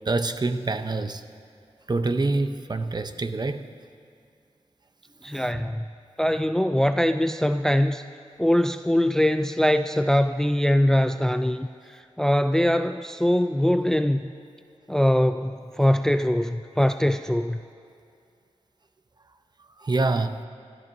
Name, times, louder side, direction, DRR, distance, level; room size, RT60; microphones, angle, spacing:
voice 1, 0.1-1.2 1.9-3.6 19.8-20.4, right 3 dB, 40° right, 9 dB, 0.7 m, -26 dB
voice 2, 5.2-5.8 6.2-8.0 8.4-11.7 12.2-14.2 14.9-17.6, left 1 dB, 5° left, 9 dB, 0.4 m, -22 dB
25.0 x 13.5 x 2.7 m, 2.4 s
cardioid pair, 60°, 11 cm